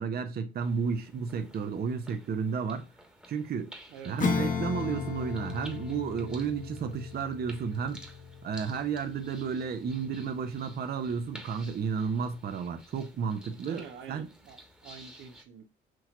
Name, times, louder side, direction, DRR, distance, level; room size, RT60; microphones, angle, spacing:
voice 1, 0.0-2.9 3.3-3.7 4.0-8.0 8.4-13.8 14.1-14.3, right 6 dB, 50° right, 0.7 m, -32 dB
sound 1, 0.6-15.4, right 1 dB, 5° right, 1.2 m, -53 dB
Acoustic guitar / Strum, 4.2-10.2, left 5 dB, 40° left, 0.9 m, -35 dB
voice 2, 13.6-15.7, right 6 dB, 80° right, 0.9 m, -46 dB
6.1 x 2.9 x 2.4 m
cardioid pair, 90°, 20 cm